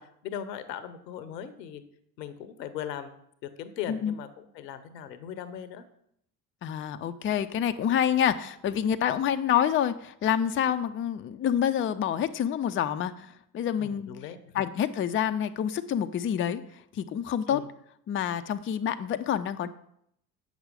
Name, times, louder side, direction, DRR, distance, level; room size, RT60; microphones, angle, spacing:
voice 1, 0.0-1.8 2.2-3.2 3.4-4.3 4.5-5.8 13.8-14.7 17.5-17.7, left 9 dB, 80° left, 12 dB, 0.9 m, -39 dB
voice 2, 6.6-14.1 14.5-17.6 18.1-19.7, left 9 dB, 25° left, 10 dB, 0.5 m, -27 dB
8.0 x 6.2 x 5.1 m, 0.72 s
figure-of-eight pair, 55°, 50 cm